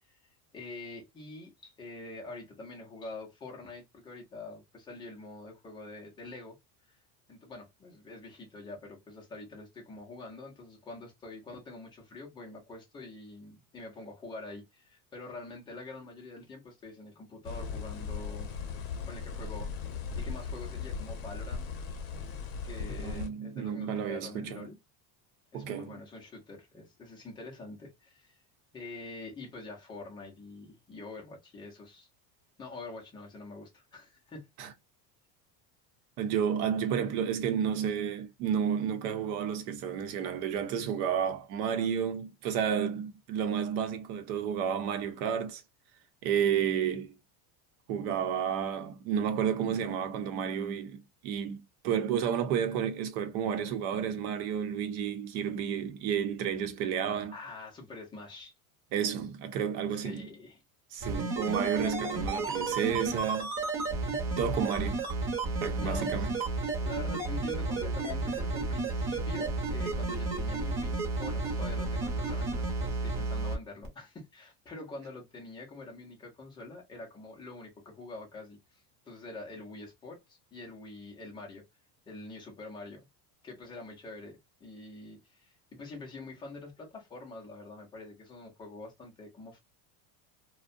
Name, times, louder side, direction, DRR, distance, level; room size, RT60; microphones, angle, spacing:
voice 1, 0.1-6.6 6.9-7.0 7.3-18.5 19.1-19.8 20.1-21.7 22.6-24.8 25.5-28.4 28.7-32.1 32.6-34.5 57.3-58.5 59.9-60.6 65.8-66.3 66.8-81.6 82.1-83.1 83.4-89.6, left 2 dB, 10° left, 0.4 m, -45 dB
sound 1, 17.4-23.3, left 5 dB, 45° left, 0.7 m, -38 dB
voice 2, 23.0-24.7 25.5-26.0 34.6-34.7 36.2-45.6 46.2-47.2 47.9-57.3 58.9-60.3 60.9-63.5 64.1-65.1 65.6-66.3, right 8 dB, 65° right, 0.8 m, -31 dB
sound 2, 61.0-73.5 73.8-73.9, right 3 dB, 25° right, 0.7 m, -32 dB
2.5 x 2.1 x 2.5 m
cardioid pair, 170°, 47 cm